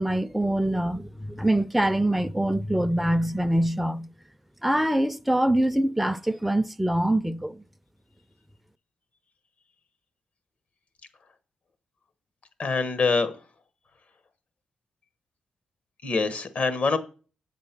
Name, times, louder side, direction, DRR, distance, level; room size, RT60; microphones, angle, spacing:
voice 1, 0.0-4.1 4.6-7.6, right 1 dB, 5° right, 0.5 m, -24 dB
voice 2, 12.6-13.3 16.0-17.0, left 4 dB, 55° left, 1.3 m, -24 dB
8.3 x 7.5 x 5.9 m
cardioid pair, 65°, 3 cm